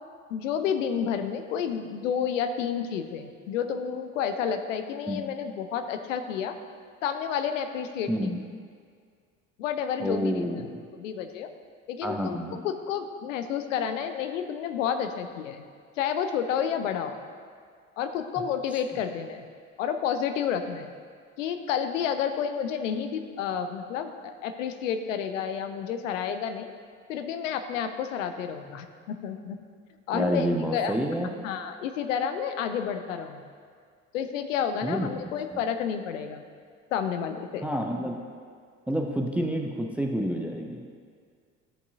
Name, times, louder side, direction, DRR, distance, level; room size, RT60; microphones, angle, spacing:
voice 1, 0.3-6.6 7.0-8.3 9.6-10.4 11.0-11.5 11.9-12.4 12.6-15.7 16.0-17.2 18.0-19.4 19.8-20.9 21.4-26.7 27.1-29.6 30.1-31.0 31.4-33.4 34.1-36.4 36.9-37.7, left 8 dB, 70° left, 8 dB, 0.6 m, -30 dB
voice 2, 8.1-8.4 10.0-10.7 12.0-12.6 30.1-31.3 34.8-35.1 37.6-38.2 38.9-40.9, equal, 5° right, 3 dB, 0.3 m, -28 dB
14.0 x 5.4 x 2.6 m, 2.1 s
figure-of-eight pair, 60°, 41 cm